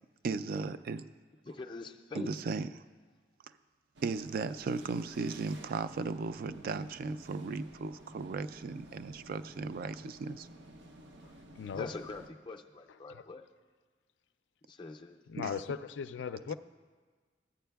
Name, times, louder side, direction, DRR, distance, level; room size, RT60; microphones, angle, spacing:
voice 1, 0.2-1.0 2.1-2.7 4.0-10.5 15.4-15.5, right 4 dB, 55° right, 0.3 m, -36 dB
voice 2, 1.4-2.3 11.7-13.5 14.7-15.2, left 3 dB, 25° left, 0.4 m, -43 dB
sound 1, 4.0-12.3, right 1 dB, 85° right, 0.7 m, -52 dB
voice 3, 11.2-11.9 13.1-13.2 15.3-16.5, left 6 dB, 90° left, 0.3 m, -38 dB
14.5 x 9.2 x 2.3 m
head